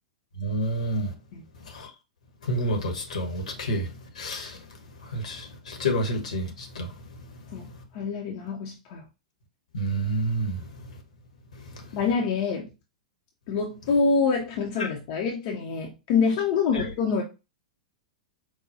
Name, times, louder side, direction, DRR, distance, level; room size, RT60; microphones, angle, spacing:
voice 1, 0.4-1.1 2.5-3.9 4.2-4.5 5.1-5.4 5.7-6.5 6.8-6.9 9.7-10.6, right 1 dB, 65° left, 1.0 m, -28 dB
voice 2, 7.5-9.0 11.9-12.7 13.5-17.2, left 5 dB, 45° left, 0.6 m, -26 dB
4.7 x 2.2 x 2.6 m
figure-of-eight pair, 100°, 4 cm